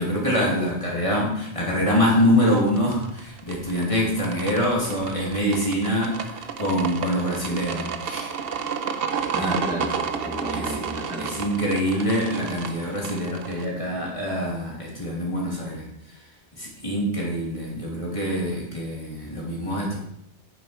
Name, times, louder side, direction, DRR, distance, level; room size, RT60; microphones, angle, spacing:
voice 1, 0.0-8.3 9.4-9.5 10.5-10.8 11.2-15.8 16.6-20.0, equal, 30° left, -4 dB, 2.8 m, -25 dB
sound 1, 2.5-13.6, right 6 dB, 60° right, 1.0 m, -31 dB
voice 2, 9.3-11.4, equal, 5° right, -2 dB, 1.3 m, -32 dB
9.6 x 7.2 x 4.4 m, 0.76 s
omnidirectional pair, 1.2 m